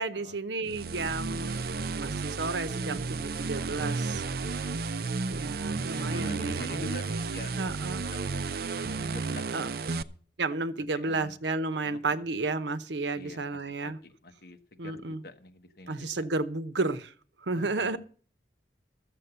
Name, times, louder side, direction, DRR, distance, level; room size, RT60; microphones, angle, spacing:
voice 1, 0.0-4.2 5.3-6.8 7.6-8.0 9.5-9.7 10.4-14.0 14.8-15.2 15.9-17.1 17.4-18.0, right 3 dB, 85° right, 14 dB, 0.9 m, -32 dB
sound 1, 0.7-10.0, right 4 dB, 60° right, 0.5 m, -33 dB
voice 2, 5.6-7.6 8.1-8.2 9.1-9.6 9.9-10.2 10.9-11.4 11.8-12.2 13.1-16.3 17.5-18.0, left 2 dB, 60° left, 7 dB, 1.2 m, -45 dB
13.0 x 7.6 x 6.8 m, 0.44 s
head